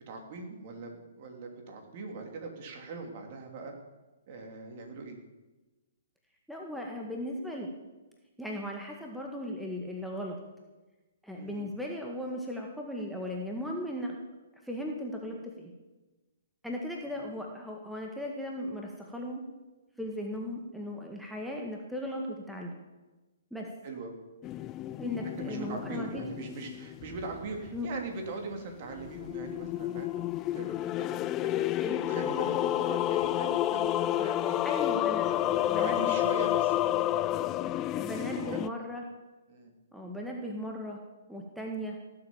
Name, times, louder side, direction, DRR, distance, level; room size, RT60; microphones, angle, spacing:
voice 1, 0.1-3.7 4.3-5.2 11.3-11.7 17.1-17.2 23.8-24.2 25.4-31.7 32.1-34.6 35.3-38.9 39.5-39.7, right 3 dB, 45° right, 2 dB, 3.4 m, -41 dB
voice 2, 6.5-7.7 8.4-10.4 11.2-14.2 14.6-15.7 16.6-19.4 20.0-22.7 23.5-23.7 25.0-26.2 27.7-27.9 31.8-32.0 34.6-36.1 38.0-39.0 39.9-41.0 41.3-42.0, left 1 dB, ahead, 0 dB, 1.8 m, -37 dB
sound 1, 24.4-27.8 28.9-38.7, left 13 dB, 25° left, 0.4 m, -30 dB
17.5 x 7.9 x 7.3 m, 1.2 s
figure-of-eight pair, 125°, 0 cm